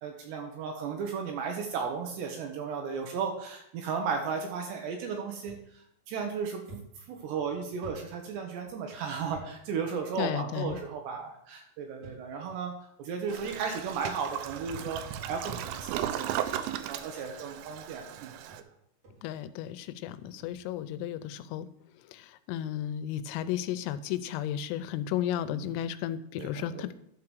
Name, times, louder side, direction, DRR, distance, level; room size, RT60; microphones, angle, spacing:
voice 1, 0.0-5.6 6.1-6.8 7.1-12.7 13.0-18.3 25.5-25.6 26.4-26.8, right 5 dB, 75° right, 3 dB, 2.7 m, -35 dB
sound 1, 5.5-5.6 6.1-6.2 6.7-8.7 9.3-9.5 9.8-9.9 10.7-11.1 12.0-12.6 13.4-13.5 14.5-14.6 14.9-16.0 16.5-16.8 17.5-17.6 18.1-18.2 18.5-18.6 19.0-19.2, right 2 dB, 40° right, 3.8 m, -50 dB
voice 2, 10.2-10.8 19.2-21.7 21.9-26.9, left 11 dB, 90° left, 13 dB, 3.3 m, -34 dB
Toilet flush, 13.3-18.6, right 11 dB, 90° right, 3.3 m, -36 dB
11.5 x 4.8 x 6.3 m, 0.73 s
omnidirectional pair, 5.9 m